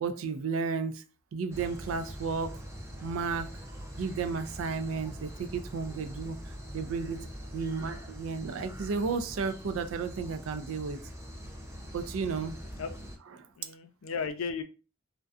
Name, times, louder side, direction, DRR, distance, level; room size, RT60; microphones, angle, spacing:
voice 1, 0.0-1.0 1.3-2.6 3.0-3.5 4.0-6.4 6.7-7.2 7.5-11.0 11.9-12.5 13.4-13.5, right 5 dB, 90° right, 10 dB, 0.4 m, -33 dB
sound 1, 1.5-13.2, equal, 15° right, 0.5 m, -43 dB
voice 2, 7.0-7.3 12.3-12.5 12.8-12.9 13.6-14.6, left 5 dB, 85° left, 8 dB, 0.4 m, -36 dB
2.5 x 2.2 x 2.3 m, 0.33 s
head